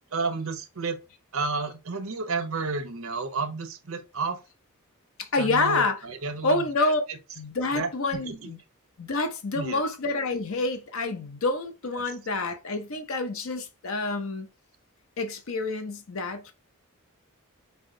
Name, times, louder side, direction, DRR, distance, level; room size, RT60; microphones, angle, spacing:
voice 1, 0.1-1.0 1.3-4.4 5.4-7.2 7.7-8.4 9.5-9.8 12.0-12.1, right 4 dB, 70° right, 0.9 m, -31 dB
voice 2, 5.2-6.0 6.4-7.0 7.4-8.6 9.0-14.5 15.2-16.5, left 3 dB, 65° left, 0.7 m, -28 dB
5.4 x 2.3 x 3.7 m
head